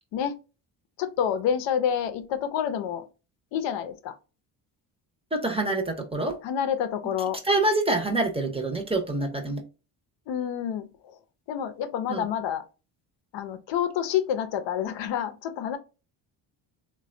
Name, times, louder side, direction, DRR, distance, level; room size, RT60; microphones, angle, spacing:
voice 1, 1.0-3.1 3.5-4.2 6.4-7.4 10.3-11.2 11.5-12.6 13.3-15.8, left 9 dB, 75° left, 0.6 m, -28 dB
voice 2, 5.3-6.4 7.5-9.6 12.1-12.2, right 2 dB, 15° right, 0.6 m, -26 dB
3.2 x 2.2 x 2.5 m
cardioid pair, 85°, 45 cm